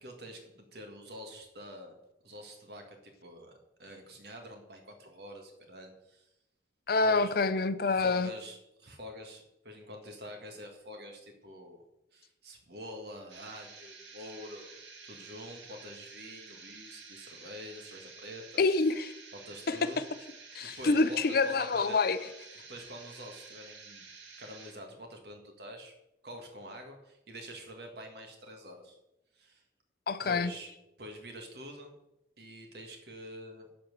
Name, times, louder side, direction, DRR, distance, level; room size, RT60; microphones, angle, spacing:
voice 1, 0.0-2.0 2.2-6.3 7.0-7.3 7.9-11.8 12.1-14.8 15.0-18.6 19.4-20.0 20.8-22.3 22.7-24.0 24.4-25.9 26.2-29.0 29.3-29.6 30.2-30.7 31.0-31.9 32.4-33.7, equal, 60° right, 4 dB, 1.7 m, -46 dB
voice 2, 6.9-8.3 18.6-19.1 19.7-20.0 20.5-22.2 30.1-30.5, left 3 dB, 55° left, 13 dB, 0.5 m, -27 dB
sound 1, 13.3-24.7, right 4 dB, 80° right, 1.8 m, -51 dB
11.0 x 4.4 x 6.7 m, 0.91 s
head